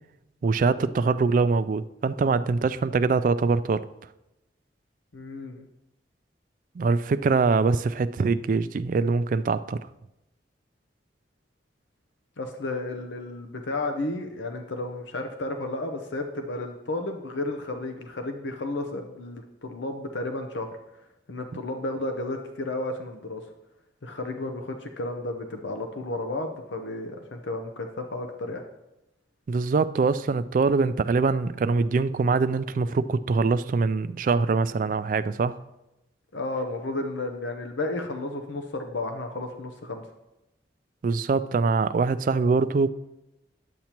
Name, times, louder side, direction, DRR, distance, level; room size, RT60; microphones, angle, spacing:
voice 1, 0.4-3.9 6.8-9.8 29.5-35.6 41.0-42.9, right 4 dB, 45° right, 13 dB, 0.3 m, -23 dB
voice 2, 5.1-5.7 12.4-20.7 21.3-23.4 24.0-28.6 36.3-40.0, left 2 dB, 90° left, 5 dB, 0.7 m, -32 dB
10.5 x 8.3 x 3.0 m, 0.94 s
head